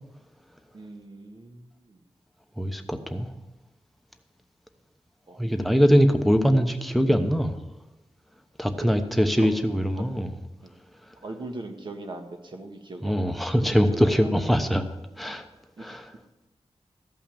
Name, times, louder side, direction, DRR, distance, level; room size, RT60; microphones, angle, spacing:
voice 1, 0.7-2.0 5.3-5.4 9.4-9.5 10.0-10.1 10.6-10.7 11.2-14.3 15.8-16.0, right 2 dB, 50° right, 4 dB, 1.6 m, -40 dB
voice 2, 2.6-3.3 5.4-7.5 8.6-10.3 13.0-14.8 15.2-15.5 15.8-16.0, equal, ahead, 6 dB, 0.9 m, -22 dB
14.0 x 5.7 x 7.1 m, 1.0 s
wide cardioid pair, 135°, 10 cm